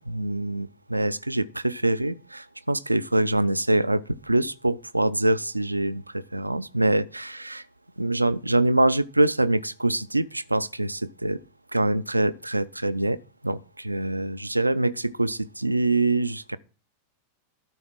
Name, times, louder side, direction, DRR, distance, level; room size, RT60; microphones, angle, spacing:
voice 1, 0.0-7.6 8.0-11.4 11.7-16.6, right 2 dB, 85° right, 0.4 m, -25 dB
12.5 x 4.2 x 6.0 m
figure-of-eight pair, 90°, 0 cm